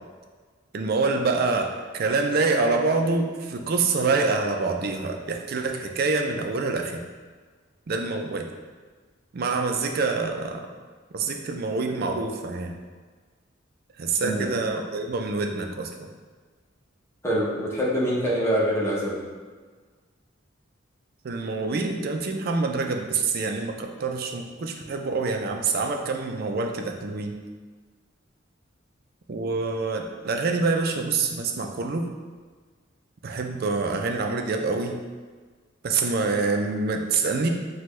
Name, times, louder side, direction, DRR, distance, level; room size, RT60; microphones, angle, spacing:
voice 1, 0.7-7.0 7.9-8.5 9.3-10.7 11.1-12.7 14.0-15.9 21.2-27.4 29.3-32.1 33.2-35.0 35.8-37.5, right 3 dB, 50° right, 4 dB, 0.4 m, -26 dB
voice 2, 14.2-14.6 17.2-19.2, equal, 15° left, -6 dB, 0.9 m, -25 dB
5.9 x 2.2 x 3.1 m, 1.5 s
head